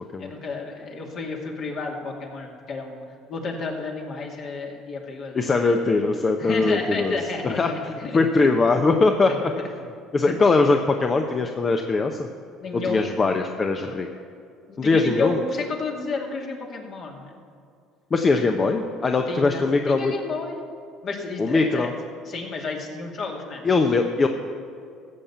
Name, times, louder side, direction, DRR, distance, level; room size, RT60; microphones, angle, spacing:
voice 1, 0.2-3.0 3.3-5.5 6.4-8.5 9.3-9.7 10.3-10.4 12.6-13.1 14.7-17.3 19.3-20.6 21.0-21.9 22.3-23.7, left 3 dB, 55° left, 0 dB, 2.4 m, -31 dB
voice 2, 5.3-7.2 7.4-7.7 8.1-9.5 10.1-12.3 12.7-14.1 14.8-15.4 18.1-20.1 21.4-21.9 23.6-24.3, left 3 dB, 35° left, 4 dB, 0.9 m, -21 dB
15.0 x 7.3 x 7.0 m, 2.3 s
hypercardioid pair, 70°, 0 cm